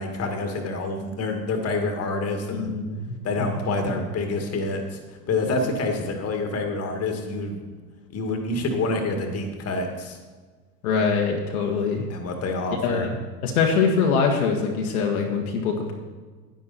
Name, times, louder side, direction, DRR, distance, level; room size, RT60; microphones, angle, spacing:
voice 1, 0.0-2.7 3.2-5.0 5.3-7.6 8.1-10.2 12.1-13.1, left 2 dB, 30° left, 4 dB, 1.9 m, -27 dB
voice 2, 2.5-3.5 10.8-12.0 12.8-15.9, left 5 dB, 65° left, 1 dB, 1.6 m, -24 dB
10.5 x 10.0 x 4.1 m, 1.4 s
figure-of-eight pair, 80°, 46 cm